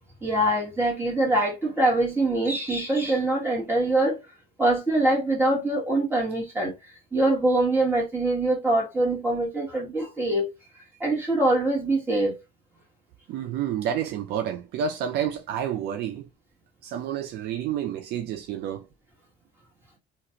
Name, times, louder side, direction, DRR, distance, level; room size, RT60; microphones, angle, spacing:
voice 1, 0.2-4.2 4.6-6.7 7.1-10.5 11.0-12.3, right 2 dB, 15° right, 1.7 m, -23 dB
voice 2, 13.3-16.3 16.8-18.8, right 9 dB, 80° right, 0.5 m, -29 dB
3.0 x 2.5 x 2.8 m
cardioid pair, 110°, 17 cm